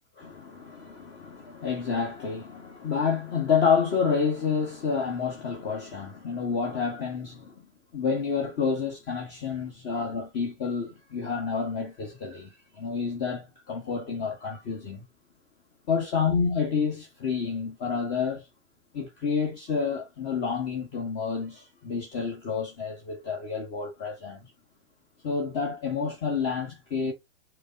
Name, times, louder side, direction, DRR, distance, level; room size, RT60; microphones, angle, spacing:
voice 1, 0.2-7.7 7.9-15.0 15.9-18.5 18.9-24.5 25.2-27.1, left 5 dB, 35° left, 1.2 m, -29 dB
5.0 x 2.2 x 3.7 m
hypercardioid pair, 130°, 37 cm